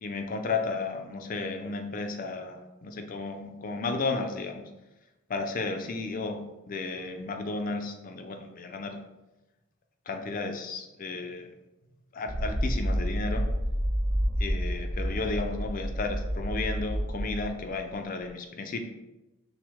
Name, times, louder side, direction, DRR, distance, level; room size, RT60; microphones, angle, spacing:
voice 1, 0.0-4.6 5.3-6.4 6.7-9.0 10.1-11.5 12.1-13.4 14.4-18.9, left 3 dB, 40° left, 5 dB, 0.4 m, -33 dB
sound 1, 12.3-17.6, equal, 60° right, 0.7 m, -29 dB
5.9 x 2.1 x 3.4 m, 1.0 s
head